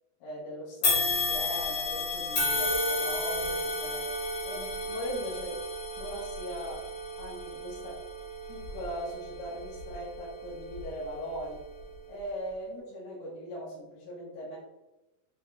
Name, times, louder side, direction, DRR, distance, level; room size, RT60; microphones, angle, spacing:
voice 1, 0.2-5.6 6.0-6.9 7.2-8.0 8.5-11.6 12.1-14.6, equal, 65° left, -7 dB, 2.8 m, -39 dB
sound 1, 0.8-10.1 10.7-10.8 11.8-11.9, left 2 dB, 85° left, 1.3 m, -32 dB
7.8 x 3.7 x 3.5 m, 1.0 s
omnidirectional pair, 6.0 m